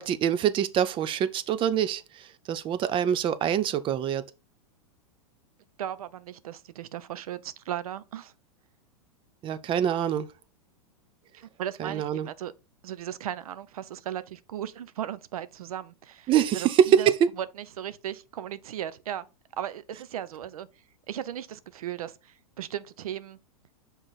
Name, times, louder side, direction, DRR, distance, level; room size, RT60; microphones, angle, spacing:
voice 1, 0.0-4.2 9.4-10.3 11.8-12.3 16.3-17.3, right 9 dB, 30° right, 0.5 m, -25 dB
voice 2, 5.8-8.3 11.6-12.5 12.8-16.7 17.0-17.1 17.4-17.5 17.8-19.3 19.6-20.7 21.1-23.4, right 10 dB, 80° right, 0.5 m, -36 dB
6.1 x 3.9 x 4.0 m
hypercardioid pair, 115°, 19 cm